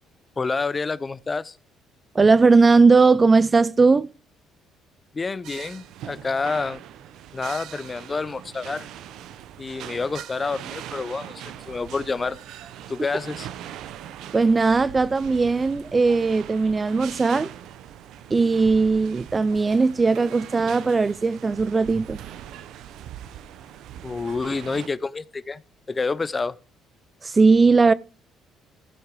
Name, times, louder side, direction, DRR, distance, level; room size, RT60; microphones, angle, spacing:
voice 1, 0.4-1.6 5.1-6.8 7.3-8.9 9.6-12.4 12.9-13.5 24.0-25.6 25.9-26.6, left 4 dB, 25° left, 0.5 m, -28 dB
voice 2, 2.2-4.1 14.3-17.5 18.3-22.2 27.2-27.9, right 4 dB, 25° right, 0.4 m, -18 dB
sound 1, 5.4-24.9, right 11 dB, 75° right, 0.7 m, -41 dB
15.5 x 5.8 x 4.8 m
cardioid pair, 105°, 0 cm